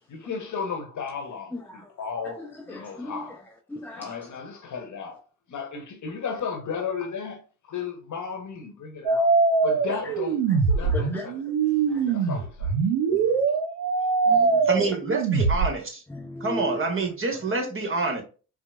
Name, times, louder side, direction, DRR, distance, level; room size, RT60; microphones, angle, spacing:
voice 1, 0.1-1.5 2.0-3.4 3.9-5.2 5.5-9.3 9.6-10.4 10.8-11.4 12.1-12.7, left 5 dB, 50° left, 1.0 m, -34 dB
voice 2, 1.5-1.9 2.4-4.3 9.9-10.2 10.5-11.5 11.9-12.2 13.1-13.4 14.3-14.7 16.1-16.8, left 1 dB, 5° left, 0.6 m, -38 dB
sound 1, 9.1-15.7, right 4 dB, 85° right, 0.6 m, -23 dB
voice 3, 14.6-16.0 16.4-18.2, right 3 dB, 35° right, 1.3 m, -27 dB
4.5 x 2.1 x 2.4 m
supercardioid pair, 55°, 37 cm